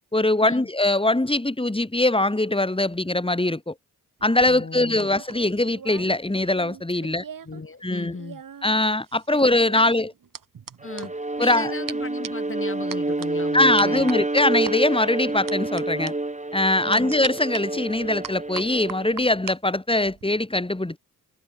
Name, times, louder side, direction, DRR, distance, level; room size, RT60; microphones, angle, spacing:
voice 1, 0.1-3.7 4.2-7.2 7.8-8.1 8.6-10.1 11.4-11.7 13.5-16.1 16.5-21.0, left 2 dB, 15° left, 6.4 m, -22 dB
sound 1, 4.2-7.6 7.9-11.6 11.9-12.0 12.2-12.5 12.9-13.3 13.8-14.7 15.5-15.8 16.1-16.2 16.9-17.6 18.2-19.6 19.9-20.2, right 7 dB, 65° right, 4.4 m, -39 dB
voice 2, 4.4-5.1 7.4-8.4 9.3-9.4 9.7-9.9 10.8-11.1 11.4-14.1 16.8-17.1, left 4 dB, 35° left, 5.5 m, -36 dB
Bowed string instrument, 10.8-19.2, right 2 dB, 20° right, 5.0 m, -28 dB
cardioid pair, 60°, 36 cm